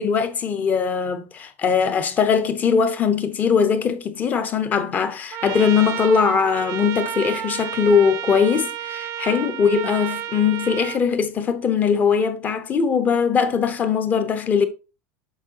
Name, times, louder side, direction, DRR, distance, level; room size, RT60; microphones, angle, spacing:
voice 1, 0.0-14.6, left 6 dB, 20° left, 0.7 m, -20 dB
Trumpet, 5.3-11.0, right 11 dB, 35° right, 0.4 m, -31 dB
7.1 x 5.8 x 2.8 m
supercardioid pair, 160°, 8 cm